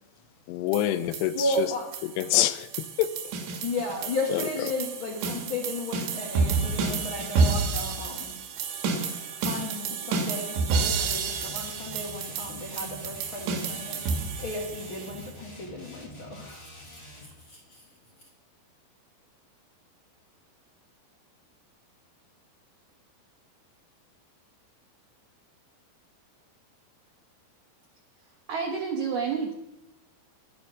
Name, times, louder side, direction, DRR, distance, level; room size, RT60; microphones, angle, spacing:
voice 1, 0.5-1.7 2.0-3.1 4.3-4.4, left 13 dB, 80° left, 13 dB, 2.7 m, -26 dB
sound 1, 0.7-15.3, right 4 dB, 80° right, 3.8 m, -30 dB
voice 2, 1.3-1.9 3.6-8.3 9.4-14.0 14.4-16.7 17.2-17.8, left 1 dB, 50° left, 1 dB, 1.5 m, -34 dB
sound 2, 10.7-17.3, left 1 dB, 15° left, 1.0 m, -46 dB
voice 3, 28.5-29.6, right 5 dB, 65° right, 1 dB, 2.0 m, -29 dB
12.5 x 10.5 x 6.2 m, 0.93 s
omnidirectional pair, 4.9 m